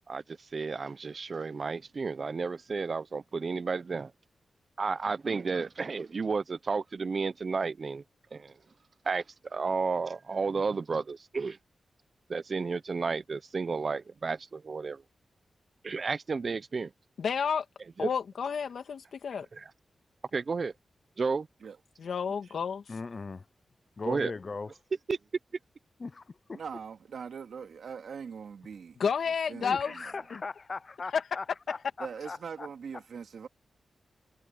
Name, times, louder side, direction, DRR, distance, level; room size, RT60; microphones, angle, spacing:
voice 1, 0.1-4.1 4.8-8.0 8.3-8.5 9.0-11.6 12.3-15.0 15.8-16.9 18.0-18.1 19.5-19.6 20.3-20.7 21.2-21.5 24.0-24.3 25.1-25.2, right 4 dB, 55° right, 1.0 m, -32 dB
voice 2, 17.2-17.7 18.0-19.5 22.0-22.9 29.0-30.0 30.3-30.4 31.1-31.4 31.7-31.8, left 6 dB, 80° left, 2.5 m, -31 dB
voice 3, 22.9-23.4 24.0-24.7 26.0-26.1 29.6-32.7, left 4 dB, 45° left, 0.6 m, -39 dB
voice 4, 26.5-29.0 29.5-30.1 32.0-33.5, right 6 dB, 80° right, 2.6 m, -41 dB
cardioid pair, 70°, 0 cm